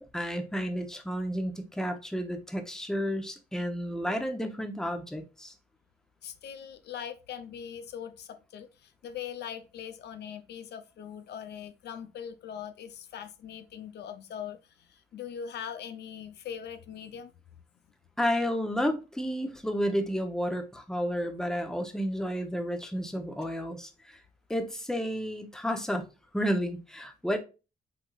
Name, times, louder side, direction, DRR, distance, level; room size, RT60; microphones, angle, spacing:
voice 1, 0.1-5.5 18.2-24.2 24.5-26.1 26.3-27.4, equal, 5° left, 0.9 m, -31 dB
voice 2, 6.2-17.3, left 8 dB, 75° left, 0.7 m, -41 dB
5.8 x 3.6 x 2.5 m
cardioid pair, 100°, 17 cm